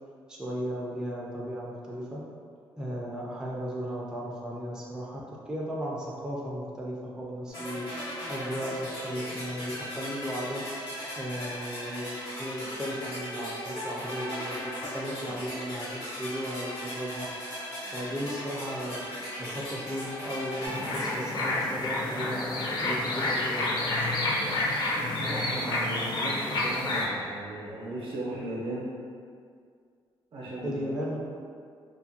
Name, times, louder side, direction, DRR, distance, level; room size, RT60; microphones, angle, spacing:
voice 1, 0.3-2.2 2.8-7.9 8.3-10.6 11.2-17.3 17.9-19.0 19.4-23.8 30.6-31.2, equal, 10° right, -5 dB, 0.4 m, -35 dB
sound 1, 7.5-22.4, equal, 85° left, 1.1 m, -38 dB
sound 2, 20.6-27.1, left 2 dB, 50° left, 0.5 m, -29 dB
voice 2, 24.3-28.9 30.3-30.8, right 1 dB, 65° right, -6 dB, 0.7 m, -38 dB
2.5 x 2.1 x 2.7 m, 2.2 s
cardioid pair, 95°, 10 cm